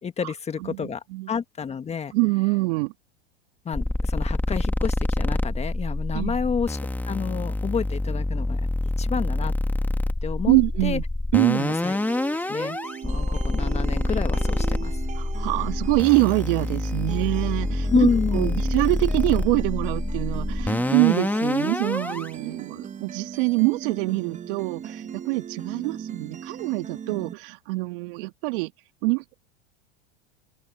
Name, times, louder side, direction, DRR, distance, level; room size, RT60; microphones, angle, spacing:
voice 1, 0.0-2.1 3.6-6.8 7.0-8.6 9.0-9.5 10.2-11.0 11.8-12.0 12.5-12.8 13.0-15.0 17.9-18.6, left 6 dB, 20° left, 1.5 m, -29 dB
voice 2, 0.6-1.3 2.1-2.9 6.1-6.4 10.4-11.0 11.3-11.8 15.2-28.7 29.0-29.3, right 25 dB, 60° right, 2.2 m, -25 dB
sound 1, 3.7-22.3, left 2 dB, 5° left, 2.2 m, -26 dB
sound 2, 11.3-27.3, right 8 dB, 25° right, 1.4 m, -38 dB
open air
hypercardioid pair, 100°, 30 cm